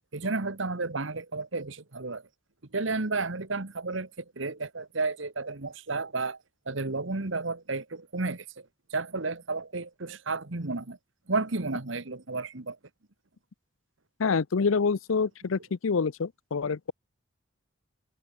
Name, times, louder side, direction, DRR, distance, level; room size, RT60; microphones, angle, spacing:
voice 1, 0.1-2.2 2.7-4.1 4.4-6.4 6.7-8.4 8.9-11.0 11.3-12.8, right 3 dB, 70° right, 1.5 m, -32 dB
voice 2, 14.2-16.9, left 5 dB, 85° left, 0.6 m, -27 dB
head